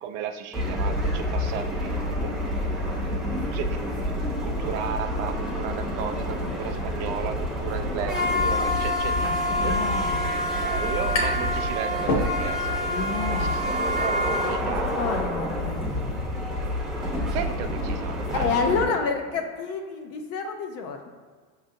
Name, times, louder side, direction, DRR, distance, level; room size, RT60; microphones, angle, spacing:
voice 1, 0.0-2.4 3.5-4.1 4.4-9.8 10.6-13.6 14.0-14.2 14.4-14.9 17.3-18.9, right 8 dB, 55° right, 7 dB, 0.5 m, -34 dB
sound 1, 0.5-18.8, left 1 dB, ahead, 0.8 m, -27 dB
voice 2, 9.2-10.2 12.9-13.5 14.9-16.3 18.3-21.1, left 5 dB, 35° left, 5 dB, 0.4 m, -29 dB
sound 2, 11.1-11.5 11.9-12.8, left 1 dB, 60° left, 1.4 m, -28 dB
5.3 x 3.8 x 2.7 m, 1.5 s
supercardioid pair, 135°, 43 cm